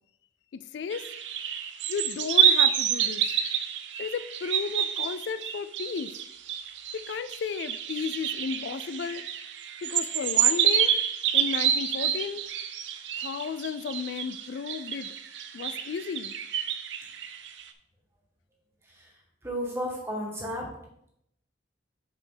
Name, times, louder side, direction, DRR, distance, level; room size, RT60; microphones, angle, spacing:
voice 1, 0.7-1.1 1.9-3.2 4.0-6.1 6.9-9.2 9.8-10.9 11.3-12.4 13.2-15.1 15.5-16.3, left 6 dB, 70° left, 13 dB, 0.3 m, -33 dB
sound 1, 0.9-17.6, right 9 dB, 80° right, 0.6 m, -28 dB
voice 2, 19.4-20.6, equal, 15° right, -2 dB, 1.9 m, -32 dB
7.5 x 5.0 x 3.9 m, 0.77 s
head